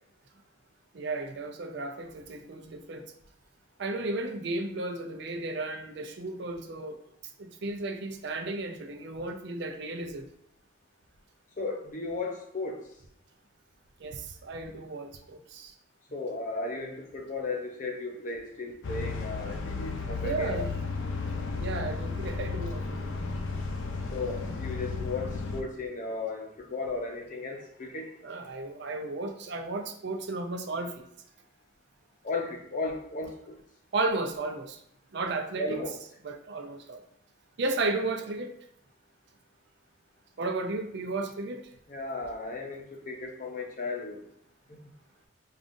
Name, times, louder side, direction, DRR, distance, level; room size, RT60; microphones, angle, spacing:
voice 1, 0.9-3.1 3.8-7.0 7.4-10.3 14.0-15.7 20.2-20.8 21.6-23.0 28.2-31.1 33.9-34.8 35.1-35.8 36.2-37.0 37.6-38.5 40.4-41.7, right 2 dB, 60° right, 5 dB, 0.5 m, -34 dB
voice 2, 11.6-12.9 16.1-20.6 21.1-21.2 24.1-28.3 32.2-33.5 35.6-36.0 41.9-44.2 44.7-44.8, left 3 dB, 40° left, 2 dB, 0.7 m, -35 dB
sound 1, 18.8-25.6, left 4 dB, 90° left, 0.5 m, -34 dB
5.2 x 2.4 x 2.5 m, 0.73 s
head